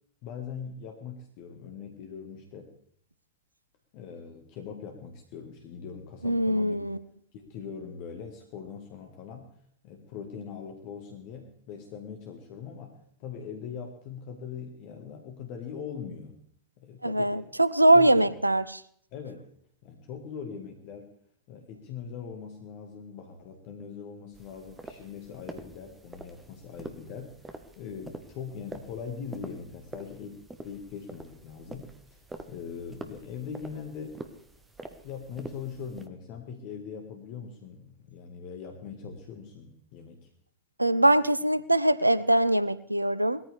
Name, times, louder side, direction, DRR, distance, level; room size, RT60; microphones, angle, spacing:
voice 1, 0.2-2.7 3.9-6.8 7.3-9.5 9.8-16.4 16.8-17.5 17.9-18.4 19.1-19.5 19.8-21.1 21.5-34.2 35.0-40.3, left 6 dB, 45° left, 3 dB, 1.8 m, -41 dB
voice 2, 6.2-7.0 17.0-18.6 40.8-43.4, right 1 dB, 85° right, 16 dB, 0.5 m, -22 dB
sound 1, 24.3-36.1, right 2 dB, 10° right, 1.4 m, -46 dB
20.0 x 14.0 x 3.5 m, 0.65 s
figure-of-eight pair, 90°, 0 cm